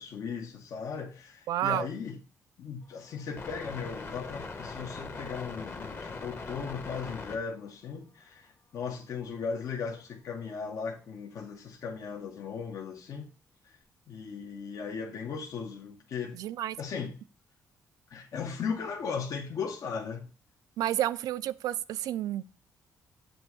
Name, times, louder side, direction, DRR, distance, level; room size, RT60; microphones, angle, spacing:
voice 1, 0.0-2.2 2.6-13.3 14.1-16.4 16.8-17.1 18.1-20.3, left 6 dB, 65° left, 0.9 m, -37 dB
voice 2, 1.5-1.9 16.3-16.8 20.8-22.4, right 12 dB, 90° right, 0.3 m, -30 dB
sound 1, 2.9-7.4, left 3 dB, 35° left, 1.0 m, -41 dB
7.7 x 2.7 x 4.6 m
cardioid pair, 110°, 6 cm